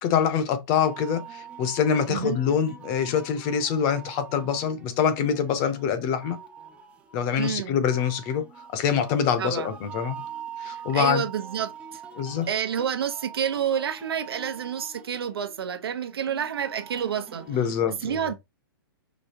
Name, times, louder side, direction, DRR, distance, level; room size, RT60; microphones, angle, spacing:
voice 1, 0.0-6.4 7.1-8.4 8.7-10.2 10.6-11.2 12.1-12.5 17.5-18.3, left 7 dB, 25° left, 0.7 m, -25 dB
sound 1, 0.7-17.8, right 7 dB, 10° right, 0.5 m, -44 dB
voice 2, 7.4-7.8 9.4-9.7 10.7-12.0 12.5-17.5 18.0-18.3, right 8 dB, 80° right, 1.0 m, -29 dB
5.1 x 3.4 x 2.9 m
hypercardioid pair, 160°, 12 cm